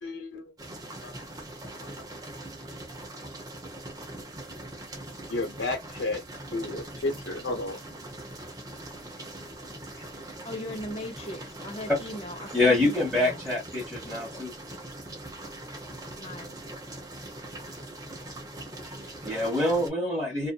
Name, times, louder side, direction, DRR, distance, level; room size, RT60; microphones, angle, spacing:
voice 1, 0.0-0.5 1.0-1.1 5.3-6.2 6.5-7.8, left 2 dB, 80° left, 1.1 m, -32 dB
sound 1, 0.6-19.9, right 1 dB, 20° right, 0.6 m, -42 dB
voice 2, 10.4-13.4 16.2-16.5, left 1 dB, 30° left, 0.8 m, -39 dB
voice 3, 12.5-14.5 18.8-20.5, left 2 dB, ahead, 1.1 m, -26 dB
2.6 x 2.4 x 2.3 m
head